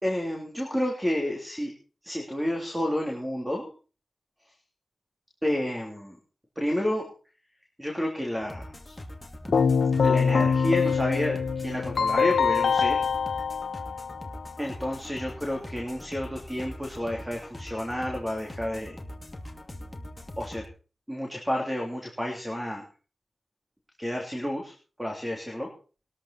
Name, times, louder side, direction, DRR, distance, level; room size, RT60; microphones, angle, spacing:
voice 1, 0.0-1.7 2.0-3.7 5.4-6.2 6.5-7.0 7.8-8.9 10.0-13.0 14.6-18.9 20.4-20.6 21.1-22.8 24.0-24.7 25.0-25.7, equal, 5° right, 0 dB, 3.3 m, -30 dB
sound 1, 8.4-20.7, left 1 dB, 20° left, 2.5 m, -42 dB
Keyboard (musical), 9.5-14.5, left 6 dB, 90° left, 1.1 m, -24 dB
20.5 x 13.0 x 4.3 m, 0.38 s
wide cardioid pair, 90°, 0 cm